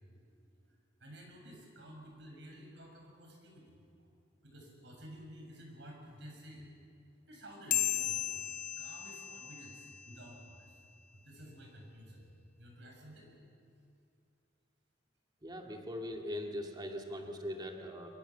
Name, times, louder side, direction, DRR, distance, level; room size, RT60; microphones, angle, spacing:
voice 1, 0.7-3.7 4.4-6.7 7.3-8.2 8.6-10.8 11.1-12.3 12.6-13.3, equal, 70° right, 1 dB, 7.1 m, -52 dB
sound 1, 7.7-10.6, left 12 dB, 45° left, 0.9 m, -36 dB
voice 2, 15.4-18.1, left 1 dB, 25° right, 2 dB, 2.4 m, -41 dB
25.0 x 23.0 x 7.2 m, 2.5 s
head